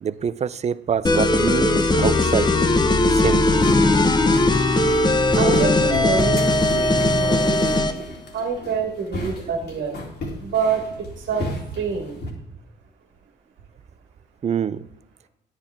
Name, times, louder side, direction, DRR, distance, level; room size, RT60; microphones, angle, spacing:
voice 1, 0.0-2.5 3.1-3.7 14.4-14.9, right 8 dB, 35° right, 0.4 m, -25 dB
sound 1, 1.0-8.0, left 2 dB, 20° left, 0.8 m, -18 dB
sound 2, 3.1-12.3, left 1 dB, 60° left, 2.5 m, -34 dB
voice 2, 5.3-8.0 8.3-9.9 10.4-10.8 11.2-11.4 11.8-12.2, right 5 dB, 75° right, 1.7 m, -26 dB
9.8 x 9.0 x 3.4 m
cardioid pair, 90°, 20 cm